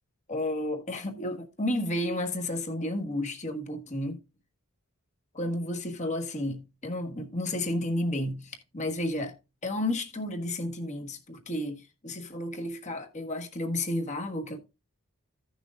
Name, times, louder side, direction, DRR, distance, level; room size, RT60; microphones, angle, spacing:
voice 1, 0.3-4.2 5.3-9.4 9.6-14.6, left 1 dB, 30° left, 1.4 m, -32 dB
15.5 x 6.3 x 2.4 m
head